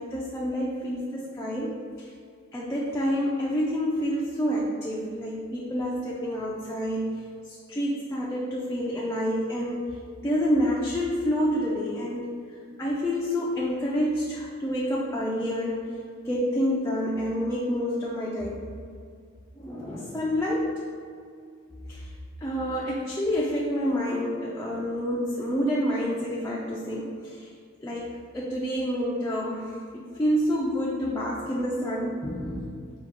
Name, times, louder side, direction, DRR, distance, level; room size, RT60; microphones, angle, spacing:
voice 1, 0.0-2.1 2.5-9.9 10.2-12.3 12.8-15.9 16.2-18.6 19.6-20.7 21.9-22.1 22.4-27.5 27.8-32.7, equal, 15° left, -5 dB, 0.4 m, -28 dB
4.8 x 2.3 x 3.6 m, 2.2 s
head